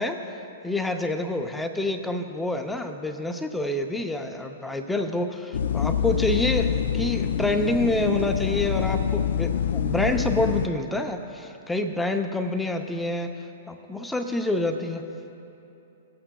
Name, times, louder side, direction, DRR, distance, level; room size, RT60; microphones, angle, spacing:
voice 1, 0.0-13.3 13.7-15.0, left 2 dB, 5° left, 5 dB, 0.6 m, -27 dB
sound 1, 5.5-10.7, left 8 dB, 70° left, 0.3 m, -26 dB
19.5 x 8.8 x 2.3 m, 2.8 s
hypercardioid pair, 120°, 0 cm